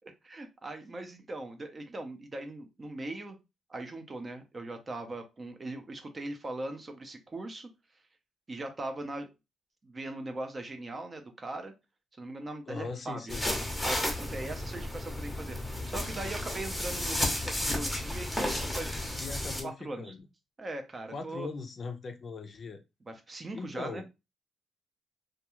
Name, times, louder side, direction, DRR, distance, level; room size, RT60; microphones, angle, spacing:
voice 1, 0.2-3.4 3.7-7.7 8.5-9.3 9.8-11.7 12.2-13.2 13.8-19.2 19.6-20.1 20.6-21.5 23.0-24.1, right 2 dB, 30° right, 6 dB, 0.6 m, -40 dB
voice 2, 12.7-13.5 19.2-20.3 21.1-22.8 23.5-24.1, left 4 dB, 45° left, 6 dB, 0.4 m, -40 dB
sound 1, 13.3-19.6, left 1 dB, 5° left, 0.8 m, -33 dB
2.3 x 2.3 x 2.9 m, 0.25 s
cardioid pair, 90°, 0 cm